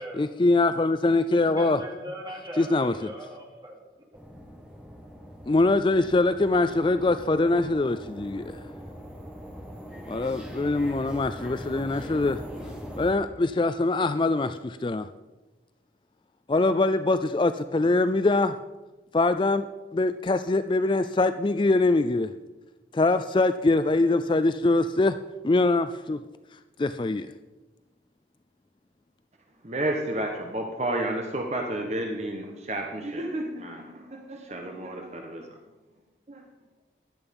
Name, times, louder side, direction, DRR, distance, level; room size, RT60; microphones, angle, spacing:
voice 1, 0.2-1.8 2.6-3.1 5.5-8.6 10.1-12.4 13.0-15.1 16.5-18.6 19.1-19.7 19.9-22.3 22.9-25.2 25.4-26.2 26.8-27.3, left 2 dB, 25° left, 11 dB, 0.3 m, -23 dB
voice 2, 1.5-3.9, equal, 25° right, -2 dB, 3.1 m, -40 dB
sound 1, 4.1-13.1, equal, 5° right, 1.7 m, -41 dB
voice 3, 29.6-35.6 36.3-36.4, right 1 dB, 40° right, 2 dB, 1.2 m, -31 dB
15.5 x 11.0 x 5.4 m, 1.2 s
head